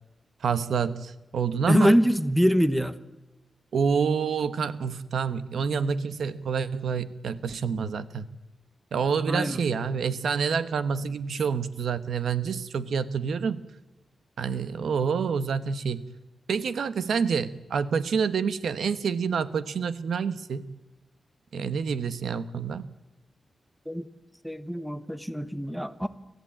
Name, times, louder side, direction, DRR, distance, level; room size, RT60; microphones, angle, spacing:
voice 1, 0.4-1.9 3.7-8.3 8.9-13.6 14.4-16.0 16.5-20.6 21.5-22.9, right 6 dB, 85° right, 1.1 m, -27 dB
voice 2, 1.7-3.0 9.3-9.6 23.9-24.1 24.4-26.1, equal, ahead, 1.1 m, -23 dB
26.5 x 14.5 x 8.8 m
wide cardioid pair, 120°, 0 cm